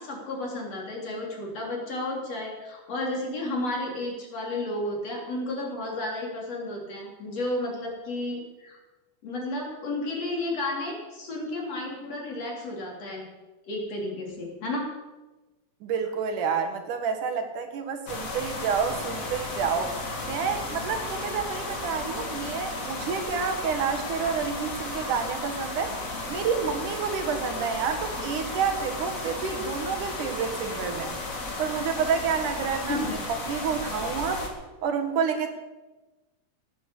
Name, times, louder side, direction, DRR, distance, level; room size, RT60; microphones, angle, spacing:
voice 1, 0.0-8.8 9.2-13.3 13.7-14.9 32.9-33.2, left 1 dB, 55° left, -1 dB, 4.5 m, -32 dB
voice 2, 15.8-20.0 20.2-26.0 26.3-31.2 31.6-33.0 33.3-34.5 34.8-35.5, right 6 dB, 80° right, 6 dB, 3.2 m, -29 dB
sound 1, 18.1-34.5, left 2 dB, 30° left, 2.2 m, -34 dB
17.0 x 8.9 x 8.5 m, 1.1 s
omnidirectional pair, 3.6 m